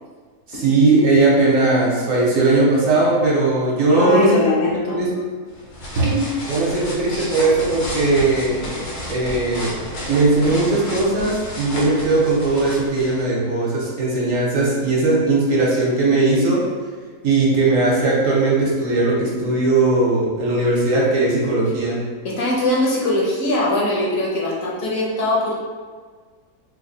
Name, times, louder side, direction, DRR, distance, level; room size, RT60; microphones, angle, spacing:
voice 1, 0.5-4.4 4.9-5.2 5.9-8.6 9.1-9.7 10.1-16.7 17.2-22.0, right 2 dB, 60° right, -5 dB, 1.1 m, -18 dB
voice 2, 3.9-5.0 22.2-25.6, left 1 dB, 65° left, -4 dB, 1.0 m, -21 dB
sound 1, 5.5-13.2, equal, 80° left, 1.4 m, -31 dB
3.2 x 2.2 x 3.8 m, 1.5 s
omnidirectional pair, 1.6 m